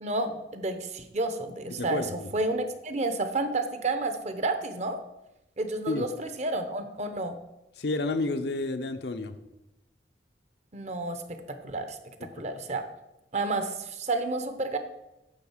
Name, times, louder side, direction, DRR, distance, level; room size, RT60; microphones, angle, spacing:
voice 1, 0.0-5.0 5.6-7.4 10.7-12.8 13.3-14.8, right 2 dB, 40° right, 8 dB, 0.8 m, -31 dB
voice 2, 1.8-2.3 5.9-6.1 7.8-9.3 12.4-12.5, left 2 dB, 65° left, 8 dB, 0.7 m, -30 dB
9.8 x 3.8 x 7.2 m, 0.93 s
head